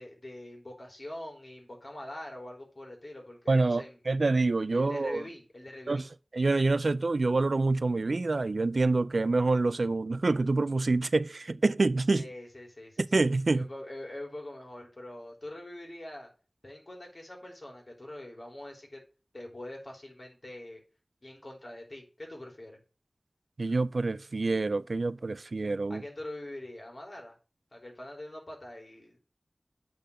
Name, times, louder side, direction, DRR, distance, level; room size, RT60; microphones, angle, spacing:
voice 1, 0.0-4.0 4.7-6.1 12.1-13.0 13.5-16.3 16.6-19.0 19.3-20.8 21.2-22.8 25.9-27.3 27.7-29.2, left 1 dB, 55° left, 3.4 m, -44 dB
voice 2, 3.5-5.2 5.9-6.0 6.3-12.2 13.1-13.6 23.6-26.0, right 3 dB, 85° right, 0.3 m, -26 dB
8.5 x 3.9 x 6.4 m
wide cardioid pair, 45°, 0 cm